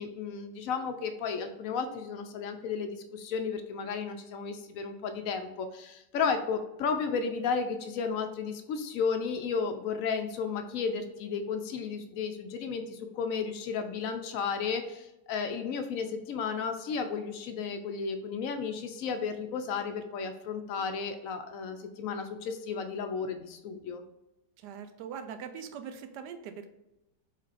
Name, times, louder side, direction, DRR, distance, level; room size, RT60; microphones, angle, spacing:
voice 1, 0.0-24.0, left 5 dB, 70° left, 6 dB, 0.8 m, -33 dB
voice 2, 24.6-26.7, right 7 dB, 90° right, 8 dB, 1.2 m, -41 dB
4.3 x 3.9 x 2.5 m, 0.92 s
omnidirectional pair, 1.7 m